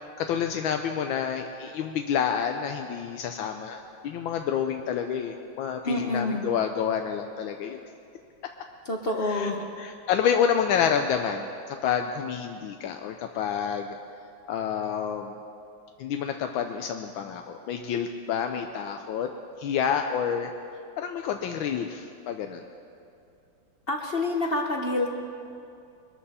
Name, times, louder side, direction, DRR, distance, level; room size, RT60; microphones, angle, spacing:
voice 1, 0.2-7.8 9.2-9.5 9.8-14.0 14.5-15.4 16.0-19.3 19.6-20.5 21.0-22.6, left 8 dB, 85° left, 5 dB, 1.4 m, -28 dB
voice 2, 5.8-6.5 8.9-9.6 23.9-25.1, left 2 dB, 50° left, 2 dB, 0.7 m, -27 dB
22.0 x 13.5 x 4.3 m, 2.5 s
omnidirectional pair, 2.1 m